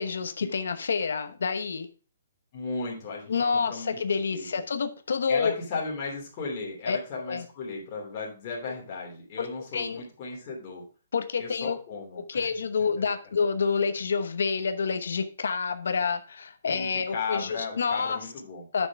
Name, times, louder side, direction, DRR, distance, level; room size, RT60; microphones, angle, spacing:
voice 1, 0.0-1.9 3.3-5.5 6.9-7.0 7.3-7.4 9.4-9.5 9.7-10.0 11.1-11.8 12.3-18.2 18.7-18.9, left 5 dB, 75° left, 0.9 m, -28 dB
voice 2, 2.5-4.0 4.3-4.6 5.3-10.8 11.4-12.5 13.0-13.1 16.7-18.6, left 4 dB, 25° left, 2.9 m, -35 dB
8.9 x 6.3 x 3.5 m
hypercardioid pair, 170°, 0 cm